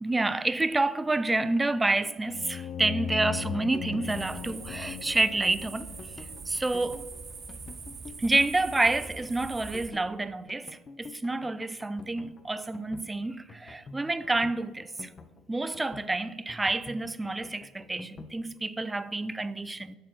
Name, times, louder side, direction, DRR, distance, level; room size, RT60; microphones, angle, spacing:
voice 1, 0.0-5.9 6.5-7.0 8.2-10.7 11.0-14.9 15.5-20.0, right 2 dB, 15° right, 0.4 m, -28 dB
sound 1, 2.3-6.8, left 8 dB, 60° left, 0.3 m, -38 dB
sound 2, 3.4-18.4, left 4 dB, 35° left, 0.7 m, -48 dB
sound 3, 4.0-9.9, right 4 dB, 35° right, 0.9 m, -43 dB
6.7 x 6.2 x 4.5 m
supercardioid pair, 80°, 0 cm